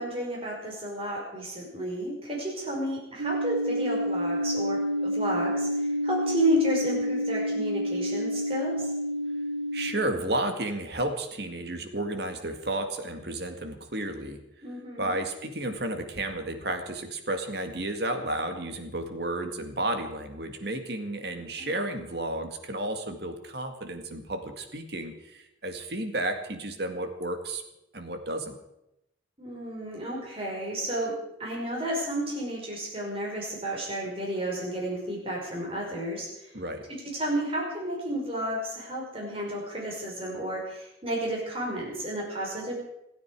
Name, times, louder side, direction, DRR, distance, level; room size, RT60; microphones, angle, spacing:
voice 1, 0.0-8.9 14.6-15.2 21.3-21.9 29.4-36.5 37.0-42.8, right 1 dB, 30° right, -2 dB, 5.1 m, -32 dB
sound 1, 3.2-9.9, equal, 80° right, 1.5 m, -29 dB
voice 2, 9.7-14.4 15.0-27.6 27.9-28.6 36.5-36.8, right 1 dB, 60° right, 6 dB, 2.0 m, -32 dB
27.0 x 9.4 x 4.8 m, 0.86 s
head